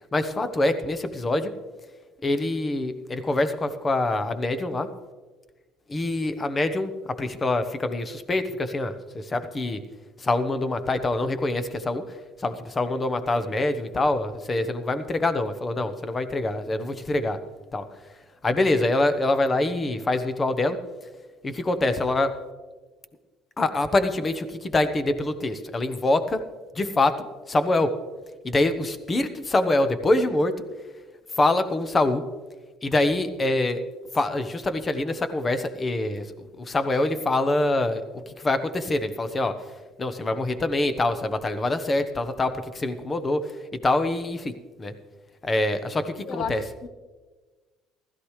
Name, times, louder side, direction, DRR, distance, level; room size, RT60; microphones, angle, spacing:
voice 1, 0.1-1.5 2.2-4.9 5.9-9.8 10.2-17.4 17.7-17.9 18.4-20.8 21.4-22.3 23.6-26.4 26.7-27.9 28.4-30.5 31.3-32.3 32.8-33.8 34.1-36.3 36.6-39.6 40.0-43.5 43.8-44.5 44.8-44.9 45.4-46.6, left 2 dB, 25° left, 10 dB, 1.0 m, -25 dB
voice 2, 46.2-46.9, left 6 dB, 65° left, 11 dB, 1.0 m, -33 dB
16.0 x 13.5 x 3.3 m, 1.3 s
cardioid pair, 105°, 0 cm